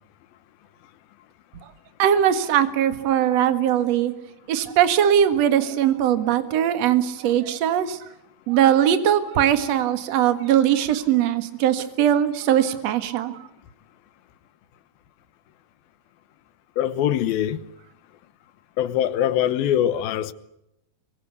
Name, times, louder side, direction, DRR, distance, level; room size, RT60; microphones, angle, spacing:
voice 1, 2.0-4.1 4.5-8.0 8.5-13.5, right 10 dB, 55° right, 2.5 m, -20 dB
voice 2, 16.8-17.6 18.8-20.3, left 11 dB, 85° left, 2.9 m, -22 dB
24.0 x 23.5 x 8.3 m
omnidirectional pair, 4.1 m